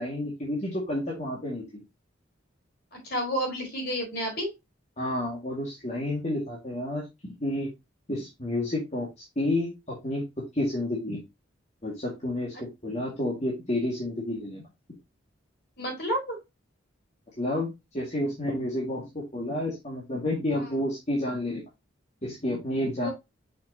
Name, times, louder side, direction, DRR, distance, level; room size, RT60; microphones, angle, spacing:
voice 1, 0.0-1.6 5.0-7.7 8.1-10.3 10.5-11.2 11.8-14.7 17.4-21.6 22.2-23.1, left 1 dB, 35° left, -4 dB, 2.1 m, -30 dB
voice 2, 3.0-4.5 15.8-16.4 20.5-20.7 23.0-23.1, equal, 55° left, 1 dB, 4.2 m, -30 dB
6.6 x 6.1 x 2.8 m, 0.22 s
head